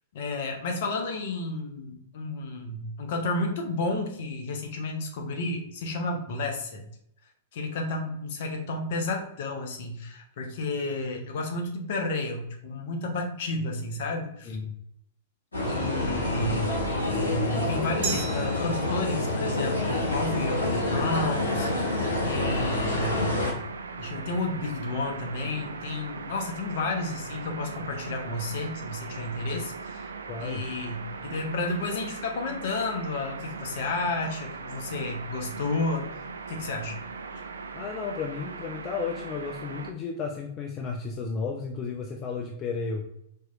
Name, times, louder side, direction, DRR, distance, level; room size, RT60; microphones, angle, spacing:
voice 1, 0.1-6.8 7.5-14.6 15.7-16.7 17.1-23.5 24.0-30.1 30.4-36.1 36.5-37.0, left 2 dB, 60° left, 2 dB, 0.9 m, -31 dB
voice 2, 14.5-14.8 30.3-30.6 37.7-43.1, left 5 dB, 30° left, 2 dB, 0.5 m, -33 dB
sound 1, 15.5-23.5, left 1 dB, 85° left, 1.4 m, -27 dB
Glass, 18.0-20.8, right 5 dB, 50° right, 1.1 m, -38 dB
sound 2, 23.5-39.9, right 4 dB, 75° right, 0.4 m, -39 dB
4.6 x 3.0 x 2.4 m, 0.73 s
figure-of-eight pair, 100°, 0 cm